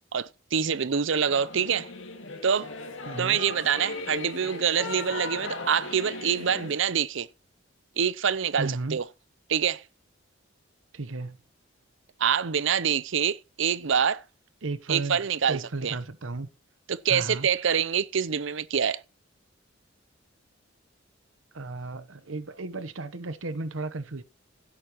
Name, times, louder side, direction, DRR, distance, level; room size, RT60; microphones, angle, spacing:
voice 1, 0.1-1.9 2.4-2.7 3.2-7.3 8.0-9.0 9.5-9.8 12.2-14.2 14.9-16.0 16.9-19.0, right 7 dB, 70° right, 0.6 m, -26 dB
Singing / Musical instrument, 1.3-6.8, left 3 dB, 75° left, 2.2 m, -38 dB
voice 2, 3.1-3.4 8.6-9.0 10.9-11.4 14.6-15.2 15.5-16.5 17.1-17.5 21.5-24.2, right 3 dB, 85° right, 1.0 m, -34 dB
16.0 x 8.8 x 3.0 m
head